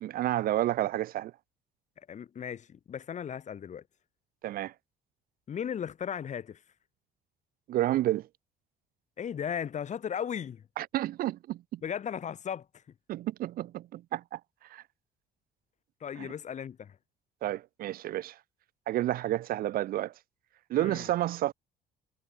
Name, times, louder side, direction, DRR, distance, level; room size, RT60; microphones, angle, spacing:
voice 1, 0.0-1.3 4.4-4.7 7.7-8.3 10.8-11.8 13.1-14.4 14.7-14.8 16.2-16.3 17.4-18.4 18.9-20.1 20.7-21.5, right 14 dB, 60° right, 0.5 m, -30 dB
voice 2, 2.1-3.8 5.5-6.6 9.2-10.6 11.8-12.7 16.0-17.0 20.7-21.1, left 8 dB, 45° left, 3.2 m, -36 dB
cardioid pair, 110°, 17 cm